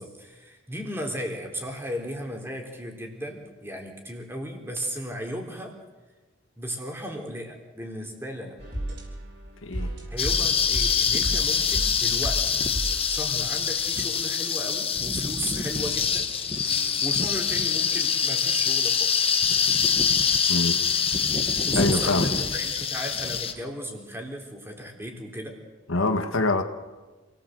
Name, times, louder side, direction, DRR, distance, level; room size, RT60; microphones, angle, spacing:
voice 1, 0.0-5.8 6.6-8.6 10.1-19.3 21.6-25.6, equal, 10° right, 1 dB, 3.9 m, -36 dB
sound 1, 8.6-14.6 15.5-18.7 19.5-22.6 23.5-23.6, right 1 dB, 55° right, 7.0 m, -37 dB
voice 2, 9.6-9.9 20.5-20.7 21.7-22.3 25.9-26.6, left 2 dB, 80° left, 7 dB, 1.8 m, -24 dB
sound 2, 10.2-23.5, left 6 dB, 25° left, 1.4 m, -25 dB
28.5 x 18.0 x 8.0 m, 1.3 s
head